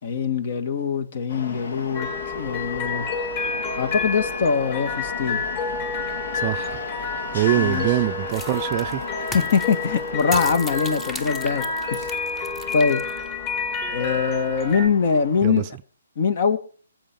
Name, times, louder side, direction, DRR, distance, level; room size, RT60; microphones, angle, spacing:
voice 1, 0.0-2.1 2.3-3.1 3.8-5.4 7.6-7.9 9.3-11.6 11.9-12.1 12.7-13.0 13.9-15.6 16.2-16.6, left 6 dB, 50° left, 2.0 m, -22 dB
sound 1, 1.3-15.5, left 4 dB, 65° left, 2.1 m, -37 dB
sound 2, 1.9-14.9, left 4 dB, 35° left, 3.4 m, -29 dB
voice 2, 6.3-6.8 7.3-9.0 15.4-15.7, right 15 dB, 30° right, 0.6 m, -24 dB
sound 3, 8.3-13.3, left 1 dB, 10° left, 1.0 m, -36 dB
21.5 x 8.0 x 5.4 m
figure-of-eight pair, 140°, 0 cm